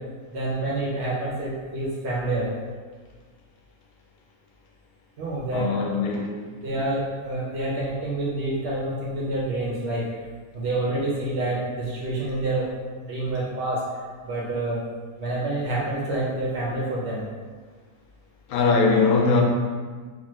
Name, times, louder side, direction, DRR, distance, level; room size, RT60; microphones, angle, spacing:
voice 1, 0.3-2.5 5.2-5.8 6.6-10.0 10.5-12.7 13.1-13.8 14.2-14.8 15.2-17.2, right 2 dB, 60° right, -5 dB, 0.7 m, -27 dB
voice 2, 5.5-6.4 18.5-19.4, left 4 dB, 85° left, -1 dB, 1.1 m, -21 dB
3.0 x 2.1 x 2.9 m, 1.5 s
omnidirectional pair, 1.5 m